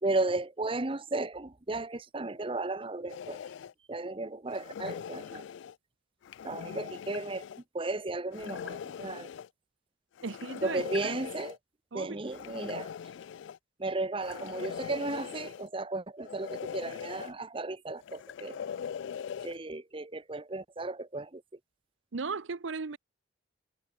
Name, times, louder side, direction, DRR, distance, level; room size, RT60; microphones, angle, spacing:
voice 1, 0.0-3.4 3.9-5.4 6.4-7.5 7.7-9.3 10.6-11.6 11.9-12.9 13.8-18.6 19.4-21.4, right 2 dB, 30° right, 0.9 m, -34 dB
sound 1, 3.1-3.7 4.5-5.7 6.2-7.6 8.3-9.5 10.2-11.6 12.3-13.6 14.2-15.7 16.2-17.3 18.0-19.6, left 7 dB, 70° left, 0.3 m, -41 dB
voice 2, 10.2-11.1 11.9-12.2 22.1-23.0, right 4 dB, 80° right, 0.8 m, -36 dB
head